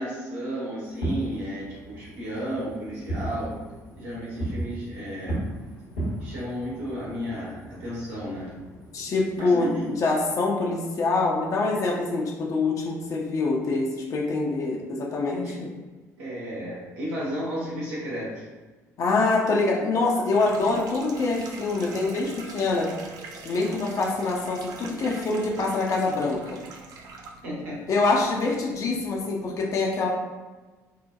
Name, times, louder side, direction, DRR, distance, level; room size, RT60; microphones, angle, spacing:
voice 1, 0.0-3.5 4.0-5.4 6.2-8.5 9.4-9.9 15.3-15.6 16.2-18.5 27.4-27.8, equal, 65° right, -7 dB, 0.9 m, -33 dB
Fireworks, 0.8-10.1, right 1 dB, 75° left, 0.9 m, -36 dB
voice 2, 8.9-15.7 19.0-22.9 23.4-26.6 27.9-30.1, left 3 dB, 40° left, -1 dB, 0.4 m, -25 dB
sound 1, 20.3-29.5, right 3 dB, 45° right, 0.3 m, -44 dB
2.7 x 2.1 x 2.3 m, 1.3 s
figure-of-eight pair, 50°, 9 cm